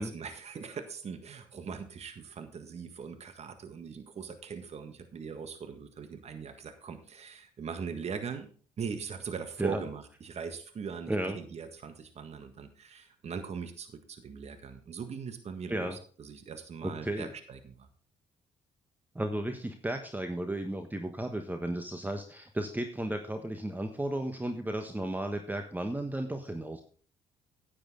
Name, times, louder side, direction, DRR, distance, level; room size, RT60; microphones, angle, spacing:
voice 1, 0.0-8.5 8.8-17.9, right 6 dB, 50° right, 8 dB, 1.6 m, -40 dB
voice 2, 16.8-17.3 19.1-26.8, right 1 dB, 10° right, 6 dB, 1.3 m, -34 dB
10.0 x 8.8 x 3.9 m, 0.42 s
hypercardioid pair, 55°, 14 cm